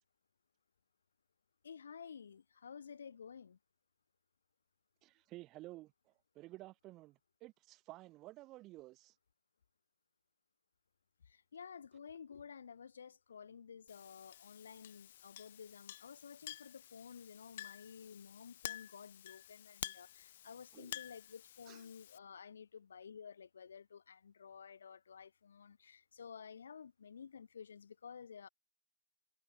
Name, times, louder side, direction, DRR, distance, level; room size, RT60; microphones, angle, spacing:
voice 1, 1.6-3.6 11.3-28.5, left 6 dB, 85° left, 1.5 m, -53 dB
voice 2, 5.0-9.1 20.7-21.0 21.7-21.8, right 18 dB, 15° right, 1.4 m, -53 dB
Chink clink, 13.9-22.2, left 12 dB, 40° left, 0.7 m, -51 dB
hypercardioid pair, 175°, 0 cm